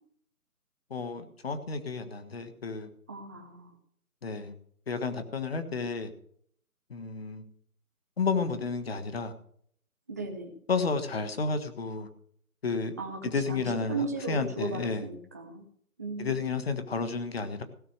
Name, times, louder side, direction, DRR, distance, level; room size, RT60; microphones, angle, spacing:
voice 1, 0.9-2.9 4.2-4.5 4.9-6.1 6.9-7.4 8.2-9.3 10.7-12.1 12.6-12.9 13.2-15.0 16.2-17.6, left 4 dB, 40° left, 1.6 m, -31 dB
voice 2, 3.1-3.7 10.1-10.5 13.0-15.6 16.0-16.7, right 3 dB, 10° right, 0.8 m, -37 dB
16.5 x 6.6 x 6.5 m
figure-of-eight pair, 155°, 44 cm